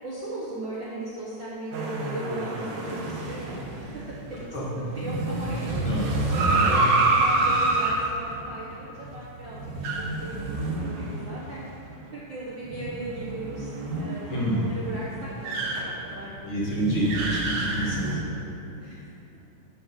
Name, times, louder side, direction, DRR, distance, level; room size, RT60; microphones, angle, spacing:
voice 1, 0.0-4.4 4.8-5.7 6.1-9.6 10.0-11.6 12.1-13.7 14.0-16.4 16.8-17.3 18.8-19.1, right 2 dB, 55° right, -7 dB, 1.3 m, -37 dB
sound 1, 1.7-11.6 12.0-12.1 12.7-18.2, right 2 dB, 85° right, 2.8 m, -28 dB
voice 2, 14.3-14.7 16.4-18.5, right 1 dB, 45° left, -6 dB, 2.0 m, -28 dB
9.5 x 6.0 x 6.8 m, 3.0 s
omnidirectional pair, 3.6 m